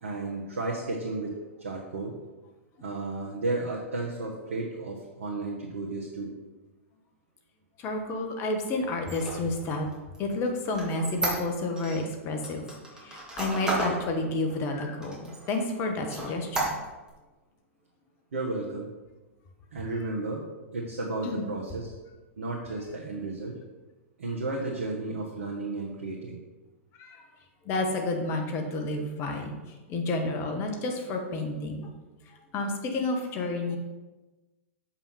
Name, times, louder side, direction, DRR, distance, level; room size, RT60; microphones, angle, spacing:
voice 1, 0.0-2.2 2.8-6.3 18.3-18.9 19.7-20.4 20.7-21.9 22.4-23.6 24.2-26.4, right 2 dB, 70° right, -2 dB, 1.2 m, -33 dB
voice 2, 7.8-9.9 10.2-12.7 13.0-16.7 21.2-21.5 27.0-27.2 27.6-29.5 29.9-31.9 32.5-33.8, left 2 dB, 35° left, 3 dB, 1.4 m, -30 dB
Squeak, 9.0-12.0 12.4-14.0 14.5-14.6 15.0-15.7 16.1-17.1, right 2 dB, 10° right, 2.3 m, -32 dB
7.0 x 5.7 x 4.3 m, 1.2 s
figure-of-eight pair, 100°, 7 cm